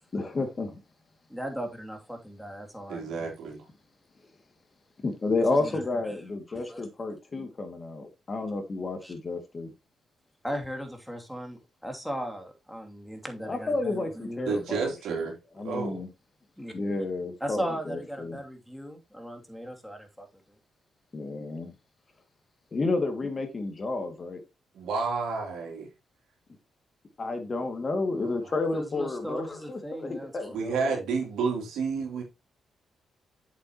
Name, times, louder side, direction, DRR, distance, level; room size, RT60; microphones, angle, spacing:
voice 1, 0.1-0.8 5.0-9.7 13.5-15.2 15.6-16.1 16.7-18.4 21.1-21.7 22.7-24.4 27.2-31.0, left 3 dB, 40° left, 2.3 m, -31 dB
voice 2, 1.3-3.1 5.5-5.8 6.1-6.2 6.5-6.9 9.0-9.1 10.4-14.5 16.6-17.0 17.4-20.6 28.7-30.6, equal, ahead, 2.8 m, -37 dB
voice 3, 2.9-3.6 14.4-16.0 24.7-25.9 30.5-32.2, right 5 dB, 80° right, 3.4 m, -30 dB
8.1 x 7.5 x 3.0 m
supercardioid pair, 55°, 0 cm